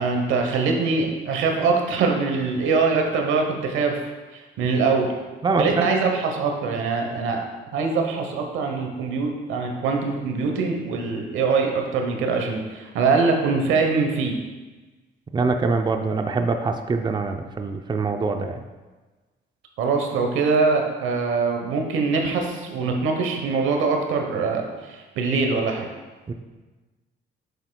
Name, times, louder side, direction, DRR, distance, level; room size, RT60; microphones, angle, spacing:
voice 1, 0.0-4.0 4.3-5.1 5.6-7.4 7.7-14.4 19.8-25.9, right 4 dB, 90° right, 3 dB, 0.9 m, -23 dB
voice 2, 5.4-5.8 15.3-18.6 26.3-26.4, right 4 dB, 20° right, 6 dB, 0.5 m, -24 dB
7.9 x 6.8 x 2.2 m, 1.3 s
cardioid pair, 90°, 20 cm